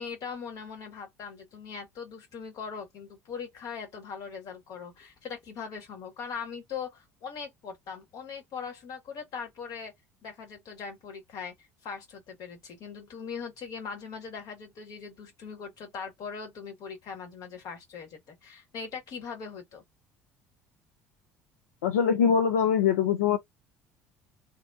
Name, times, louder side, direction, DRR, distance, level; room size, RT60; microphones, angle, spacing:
voice 1, 0.0-9.9 10.2-11.5 11.8-19.8, left 6 dB, 55° left, 1.3 m, -40 dB
voice 2, 21.8-23.4, left 7 dB, 80° left, 0.4 m, -23 dB
2.7 x 2.3 x 2.3 m
hypercardioid pair, 65°, 8 cm